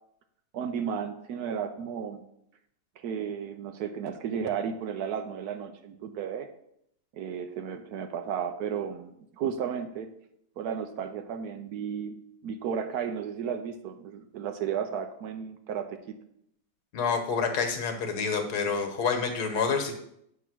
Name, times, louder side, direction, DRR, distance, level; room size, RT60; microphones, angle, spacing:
voice 1, 0.5-2.2 3.0-6.5 7.1-10.1 10.6-12.2 12.4-16.1, right 7 dB, 70° right, 8 dB, 1.1 m, -33 dB
voice 2, 16.9-19.9, left 5 dB, 70° left, 5 dB, 1.5 m, -28 dB
8.4 x 3.4 x 6.0 m, 0.73 s
omnidirectional pair, 1.8 m